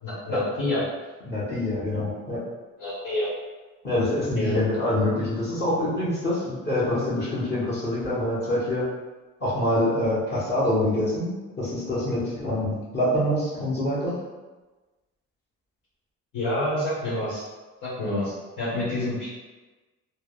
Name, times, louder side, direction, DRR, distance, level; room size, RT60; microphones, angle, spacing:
voice 1, 0.0-0.8 2.8-3.3 4.3-4.6 16.3-17.4 17.8-19.3, left 1 dB, 80° left, -12 dB, 1.3 m, -28 dB
voice 2, 1.2-2.4 3.8-8.8 9.4-14.2, left 1 dB, 35° left, -9 dB, 1.1 m, -25 dB
3.2 x 2.1 x 2.3 m, 1.2 s
cardioid pair, 90°, 30 cm